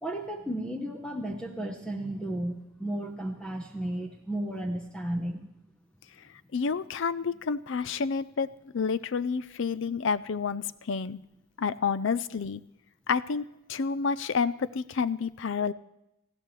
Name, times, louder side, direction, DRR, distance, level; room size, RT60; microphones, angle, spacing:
voice 1, 0.0-5.5, right 1 dB, 5° left, 2 dB, 0.8 m, -34 dB
voice 2, 6.5-8.5 8.7-11.2 11.6-12.6 13.1-15.7, left 5 dB, 60° left, 16 dB, 0.4 m, -29 dB
19.0 x 14.5 x 3.2 m, 0.87 s
head